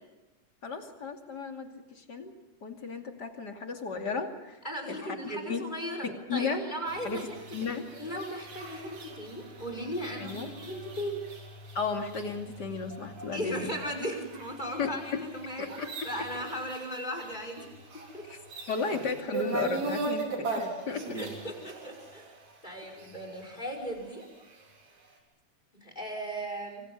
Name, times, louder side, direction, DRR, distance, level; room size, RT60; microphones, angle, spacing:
voice 1, 0.6-2.3 2.6-4.6 4.9-5.6 6.0-6.7 7.0-7.2 7.5-7.8 10.2-10.5 11.7-13.7 14.8-15.2 15.6-15.9 18.3-18.4 18.7-21.0, left 4 dB, 35° left, 4 dB, 2.9 m, -34 dB
voice 2, 4.6-7.4 8.0-11.2 13.3-15.8 16.0-17.7 18.1-18.3 21.1-22.3 22.6-24.3 25.8-26.8, equal, 15° left, 3 dB, 5.8 m, -37 dB
sound 1, 6.9-24.7, right 3 dB, 65° right, 5.4 m, -40 dB
27.0 x 25.0 x 5.6 m, 1.0 s
omnidirectional pair, 3.5 m